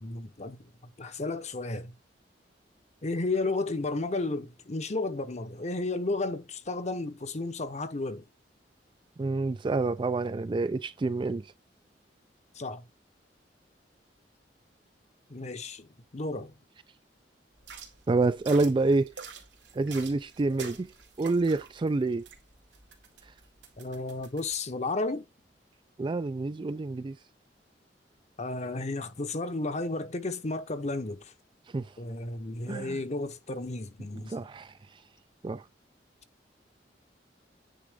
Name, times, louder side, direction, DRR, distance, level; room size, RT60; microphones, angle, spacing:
voice 1, 0.0-0.6 1.0-1.9 3.0-8.2 12.5-12.9 15.3-16.5 23.8-25.3 28.4-31.3 32.0-34.3, left 2 dB, 40° left, 0.9 m, -33 dB
voice 2, 9.2-11.5 18.1-19.1 19.7-22.3 26.0-27.2 31.7-31.9 32.7-33.0 34.1-34.7 35.4-35.6, right 3 dB, 25° right, 0.3 m, -28 dB
sound 1, 17.6-24.5, right 4 dB, 85° right, 2.2 m, -47 dB
9.4 x 3.7 x 3.6 m
head